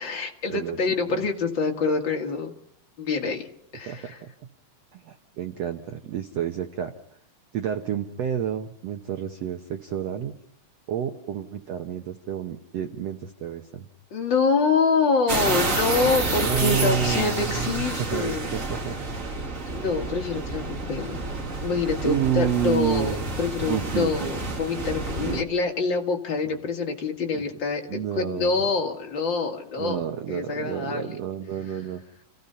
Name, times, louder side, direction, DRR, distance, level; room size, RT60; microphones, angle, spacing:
voice 1, 0.0-2.5 3.0-3.5 3.7-4.2 14.1-18.5 19.7-21.2 21.6-30.0 30.3-31.2, left 4 dB, 40° left, 2 dB, 2.0 m, -26 dB
voice 2, 3.9-4.3 4.9-6.9 7.5-10.3 10.9-13.9 16.5-19.1 22.0-23.2 23.7-24.4 24.8-24.9 25.2-25.4 27.3-27.4 27.9-28.6 29.8-32.0, right 9 dB, 70° right, 6 dB, 1.6 m, -30 dB
sound 1, 15.3-25.4, right 3 dB, 35° right, 1.3 m, -29 dB
29.0 x 16.5 x 5.6 m, 0.67 s
omnidirectional pair, 4.2 m